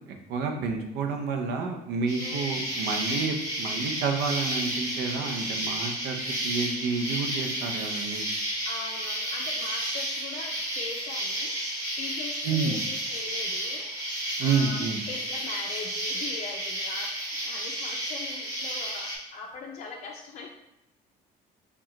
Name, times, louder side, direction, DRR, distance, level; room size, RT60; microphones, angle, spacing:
voice 1, 0.1-8.3 12.4-12.8 14.4-15.0, right 5 dB, 85° right, 4 dB, 0.6 m, -29 dB
Insect, 2.1-19.2, right 1 dB, 20° right, 1.4 m, -32 dB
voice 2, 8.6-13.9 14.4-20.5, left 4 dB, 45° left, 0 dB, 0.4 m, -41 dB
4.5 x 2.3 x 2.9 m, 0.88 s
cardioid pair, 110°, 17 cm